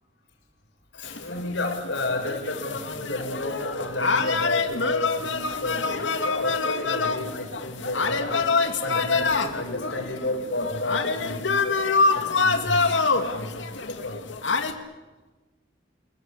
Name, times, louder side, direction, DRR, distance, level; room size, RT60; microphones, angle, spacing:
voice 1, 0.9-8.5 8.8-11.8 12.0-14.2, left 1 dB, 70° left, 3 dB, 6.7 m, -32 dB
sound 1, 1.0-14.7, left 4 dB, 90° left, 2.3 m, -26 dB
29.0 x 21.5 x 8.7 m, 1.2 s
head